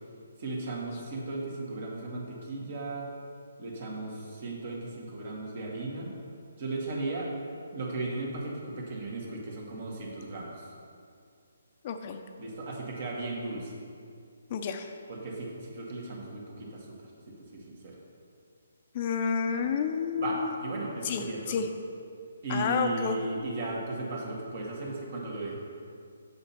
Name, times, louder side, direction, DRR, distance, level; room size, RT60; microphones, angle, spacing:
voice 1, 0.4-3.1 3.6-6.1 6.6-7.3 7.7-10.7 12.4-13.7 15.1-17.0 17.5-18.0 20.2-21.6 22.4-25.6, right 2 dB, 55° right, -2 dB, 2.1 m, -36 dB
voice 2, 11.8-12.2 14.5-14.9 18.9-20.5 21.0-21.7 22.5-23.2, left 6 dB, 40° left, 6 dB, 0.6 m, -30 dB
7.7 x 7.2 x 4.4 m, 2.3 s
figure-of-eight pair, 145°, 0 cm